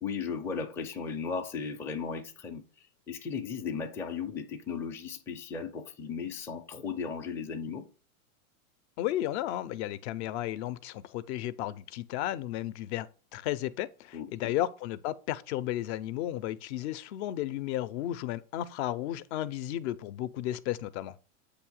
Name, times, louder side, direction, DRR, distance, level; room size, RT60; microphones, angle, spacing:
voice 1, 0.0-2.6 3.1-7.9 14.1-14.5, left 6 dB, 5° left, 0.4 m, -36 dB
voice 2, 9.0-13.1 13.3-21.2, left 13 dB, 50° left, 0.6 m, -33 dB
8.3 x 2.9 x 6.2 m
hypercardioid pair, 130°, 43 cm